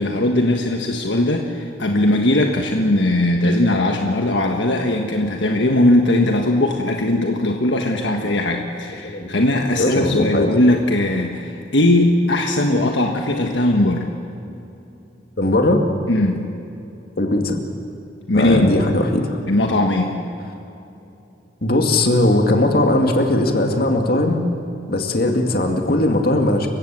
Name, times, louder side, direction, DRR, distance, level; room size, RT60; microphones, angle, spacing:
voice 1, 0.0-14.1 16.1-16.5 18.3-18.7 19.5-20.2, left 1 dB, 70° left, 2 dB, 1.5 m, -19 dB
voice 2, 9.8-10.5 15.4-15.8 17.2-17.6 18.3-19.4 21.6-24.4 24.9-26.7, left 1 dB, 55° left, 4 dB, 2.3 m, -18 dB
29.0 x 16.0 x 7.6 m, 2.8 s
head